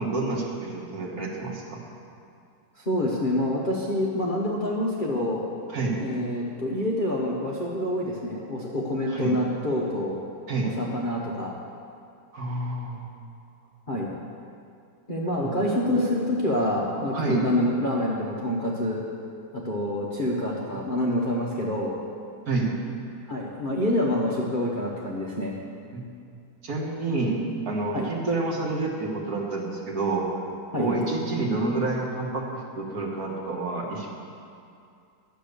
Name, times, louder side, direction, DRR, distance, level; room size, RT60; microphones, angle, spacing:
voice 1, 0.0-1.8 5.7-6.0 9.1-9.4 10.5-10.7 12.3-13.1 15.4-15.7 17.1-17.4 22.5-22.7 25.9-26.0 26.6-27.4 27.7-30.3 30.8-34.1, right 3 dB, 50° right, -2 dB, 1.7 m, -28 dB
voice 2, 2.9-5.4 6.0-10.2 10.6-11.5 13.9-14.1 15.1-19.0 19.5-22.0 23.3-25.5 27.9-28.1 30.7-30.9, left 1 dB, 35° left, -5 dB, 0.9 m, -27 dB
10.5 x 7.6 x 6.7 m, 2.4 s
omnidirectional pair, 2.2 m